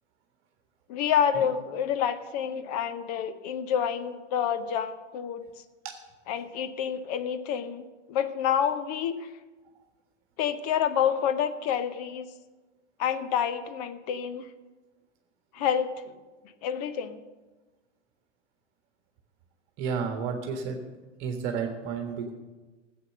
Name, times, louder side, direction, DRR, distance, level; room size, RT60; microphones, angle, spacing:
voice 1, 0.9-5.4 6.3-9.3 10.4-12.3 13.0-14.5 15.5-15.9 16.6-17.2, left 8 dB, 35° left, 11 dB, 0.7 m, -28 dB
voice 2, 19.8-20.8 21.2-22.3, right 6 dB, 35° right, 4 dB, 1.5 m, -31 dB
16.0 x 7.8 x 6.5 m, 1.3 s
figure-of-eight pair, 100°, 37 cm